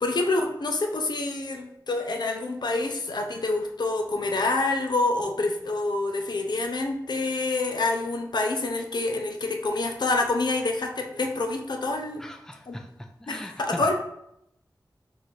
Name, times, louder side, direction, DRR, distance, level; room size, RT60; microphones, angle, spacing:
voice 1, 0.0-12.3 12.7-12.8 13.3-14.0, left 2 dB, 80° left, 4 dB, 0.5 m, -27 dB
voice 2, 12.2-13.9, left 1 dB, 5° left, 5 dB, 0.4 m, -38 dB
3.9 x 2.5 x 4.5 m, 0.78 s
wide cardioid pair, 80°, 7 cm